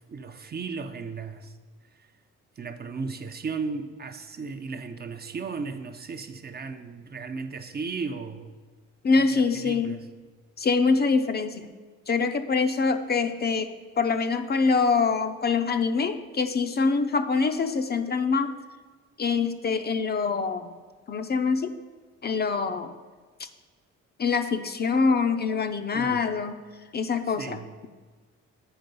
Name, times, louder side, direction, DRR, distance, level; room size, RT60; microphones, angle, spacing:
voice 1, 0.0-1.5 2.0-2.1 2.6-8.5 9.3-10.0 25.9-26.2 27.3-27.7, right 4 dB, 35° right, 7 dB, 0.6 m, -35 dB
voice 2, 9.0-10.0 10.6-11.7 12.1-13.7 14.0-18.5 19.2-20.7 21.1-21.7 22.2-22.9 23.4-23.5 24.2-26.6 26.9-27.9, left 4 dB, 35° left, 8 dB, 0.5 m, -25 dB
7.9 x 5.3 x 5.3 m, 1.4 s
cardioid pair, 90°, 30 cm